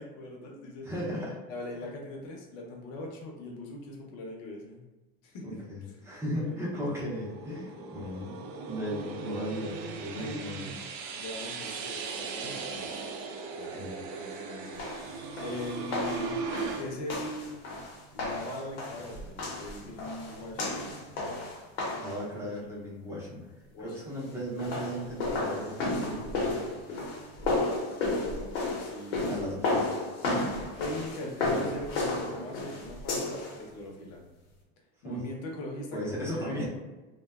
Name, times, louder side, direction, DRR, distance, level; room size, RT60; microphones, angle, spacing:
voice 1, 0.0-0.9 1.5-4.8 5.2-5.5 6.4-6.8 7.5-8.0 10.1-10.7 11.1-13.1 13.5-14.8 15.4-16.4 16.7-17.6 18.1-21.1 23.1-23.3 23.7-24.0 27.4-27.8 28.1-29.4 30.8-34.2 35.0-36.6, left 1 dB, 60° left, -1 dB, 0.7 m, -41 dB
voice 2, 0.8-1.4 5.4-8.3 8.7-10.6 13.7-13.9 22.0-23.4 23.8-26.6 26.9-27.1 29.2-29.9 35.0-35.2 35.9-36.7, equal, 10° right, -6 dB, 0.6 m, -36 dB
sound 1, 6.7-16.8, right 4 dB, 65° right, 0.5 m, -38 dB
sound 2, 14.8-22.2 24.4-33.6, left 2 dB, 90° left, 0.8 m, -33 dB
2.5 x 2.2 x 2.3 m, 1.1 s
supercardioid pair, 135°, 30 cm